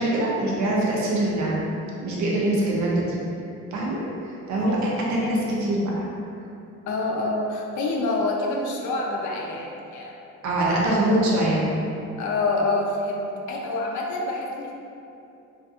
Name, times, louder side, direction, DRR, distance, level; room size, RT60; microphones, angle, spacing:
voice 1, 0.0-1.6 2.0-3.2 3.7-4.8 5.1-6.1 10.4-11.7, right 1 dB, 70° right, -4 dB, 0.7 m, -23 dB
voice 2, 4.6-4.9 5.2-5.5 6.9-10.2 10.6-11.1 12.2-14.7, left 2 dB, 75° left, -1 dB, 0.5 m, -27 dB
2.6 x 2.5 x 2.4 m, 2.7 s
cardioid pair, 90°, 30 cm